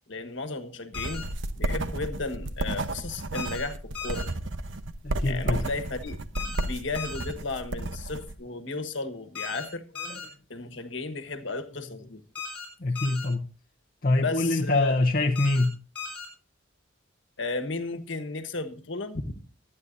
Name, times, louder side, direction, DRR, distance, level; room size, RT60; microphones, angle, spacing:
voice 1, 0.1-1.2 1.6-4.4 5.2-9.8 10.5-12.2 14.2-15.0 17.4-19.3, left 3 dB, 65° left, 1.5 m, -34 dB
sound 1, 0.9-1.2 3.3-3.7 3.9-4.3 6.4-6.7 7.0-7.3 9.4-9.7 10.0-10.3 12.4-12.7 13.0-13.3 15.4-15.7 16.0-16.3, left 5 dB, 5° left, 7.7 m, -37 dB
sound 2, 0.9-8.3, right 2 dB, 70° right, 1.0 m, -32 dB
voice 2, 5.0-5.6 10.1-10.2 12.8-13.4 14.0-15.8, left 2 dB, 45° left, 0.9 m, -24 dB
23.5 x 9.7 x 2.7 m
head